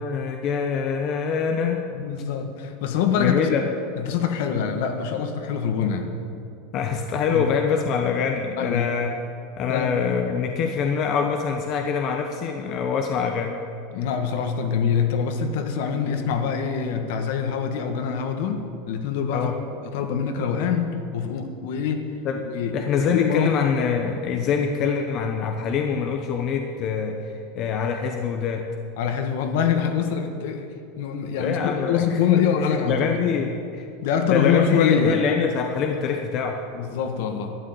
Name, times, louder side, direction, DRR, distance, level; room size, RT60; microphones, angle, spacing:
voice 1, 0.0-1.8 3.2-3.7 6.7-9.2 9.6-13.6 19.3-19.6 22.2-22.4 22.7-28.7 31.4-32.2 32.6-33.9 34.3-36.6, left 6 dB, 35° left, 3 dB, 0.9 m, -25 dB
voice 2, 1.9-3.4 4.0-6.1 7.3-7.5 8.6-8.9 9.7-9.9 13.9-19.5 19.9-22.0 22.4-23.6 29.0-30.7 31.0-33.1 33.4-33.5 34.0-35.2 36.7-37.5, left 7 dB, 60° left, 6 dB, 1.6 m, -24 dB
12.5 x 9.5 x 9.3 m, 2.5 s
supercardioid pair, 170°, 0 cm